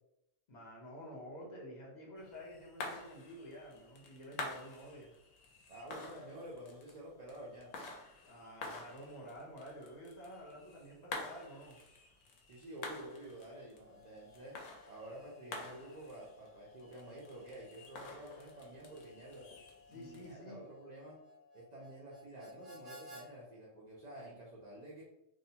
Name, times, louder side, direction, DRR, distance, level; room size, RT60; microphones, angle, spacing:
voice 1, 0.5-5.1 8.2-11.8 19.9-20.7, equal, 50° left, -3 dB, 0.6 m, -50 dB
sound 1, 2.2-20.3, left 3 dB, 75° left, 0.9 m, -49 dB
voice 2, 5.7-7.7 12.5-14.5 14.9-19.5 19.9-21.2 21.5-25.0, right 1 dB, 70° right, -5 dB, 0.4 m, -50 dB
Harmonica, 13.7-23.3, left 1 dB, 35° right, 0.8 m, -58 dB
2.6 x 2.1 x 2.7 m, 0.84 s
omnidirectional pair, 1.3 m